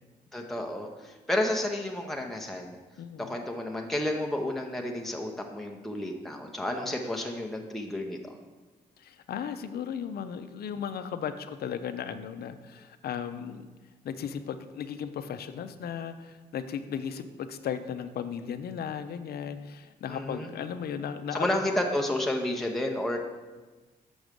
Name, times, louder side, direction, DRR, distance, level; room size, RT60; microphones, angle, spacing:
voice 1, 0.3-2.8 3.2-8.3 20.1-20.5 21.3-23.2, left 1 dB, ahead, 1 dB, 0.8 m, -31 dB
voice 2, 3.0-3.3 9.0-13.7 14.0-21.5, left 8 dB, 70° left, 10 dB, 0.6 m, -36 dB
6.2 x 6.1 x 5.2 m, 1.3 s
cardioid pair, 75°, 17 cm